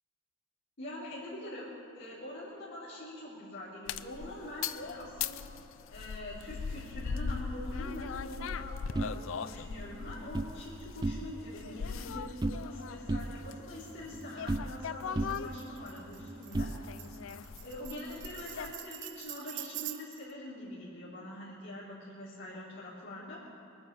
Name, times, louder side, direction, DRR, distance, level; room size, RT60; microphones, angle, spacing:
voice 1, 0.8-5.4 5.9-16.7 17.6-23.5, left 1 dB, 60° left, -10 dB, 3.5 m, -44 dB
sound 1, 3.9-18.8, left 6 dB, 85° left, 0.5 m, -40 dB
sound 2, 8.9-10.6 10.9-11.6 11.8-12.8 13.1-14.9 15.2-17.3, right 2 dB, 20° right, 0.4 m, -36 dB
Tambourine, 15.3-20.3, right 14 dB, 60° right, 0.7 m, -45 dB
21.5 x 9.6 x 6.6 m, 2.9 s
head